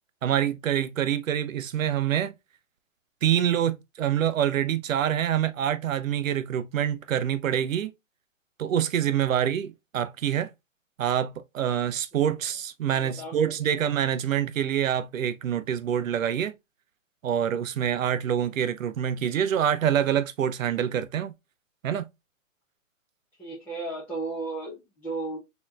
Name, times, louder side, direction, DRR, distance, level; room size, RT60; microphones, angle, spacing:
voice 1, 0.2-2.3 3.2-7.9 8.6-10.5 11.0-16.5 17.2-21.3 21.8-22.1, right 9 dB, 85° right, 0.6 m, -26 dB
voice 2, 12.9-13.4 13.6-13.7 18.2-18.3 23.4-25.4, right 3 dB, 5° left, 0.7 m, -35 dB
4.2 x 2.9 x 2.3 m
hypercardioid pair, 150°, 39 cm